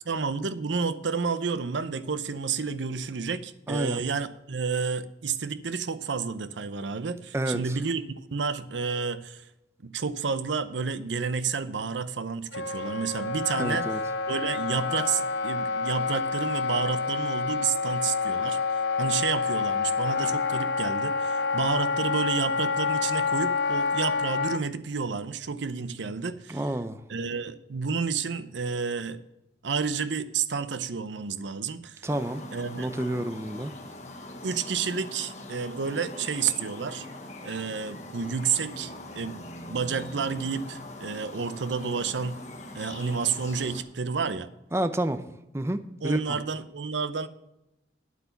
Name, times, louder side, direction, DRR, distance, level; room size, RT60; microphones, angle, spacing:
voice 1, 0.0-9.4 9.8-13.9 14.3-18.6 19.0-26.7 27.1-29.2 29.6-32.1 32.5-32.9 34.4-37.1 37.4-42.4 42.7-44.5 46.0-47.3, right 5 dB, 90° right, 0.7 m, -30 dB
voice 2, 3.7-4.0 7.3-7.8 13.6-14.0 26.5-27.0 32.0-32.4 32.8-33.7 44.7-45.2 45.5-46.4, right 1 dB, 15° right, 0.5 m, -29 dB
Wind instrument woodwind instrument, 12.5-24.6, left 4 dB, 75° left, 0.5 m, -28 dB
sound 1, 32.1-43.8, left 1 dB, 40° left, 1.2 m, -42 dB
9.3 x 8.2 x 5.8 m
head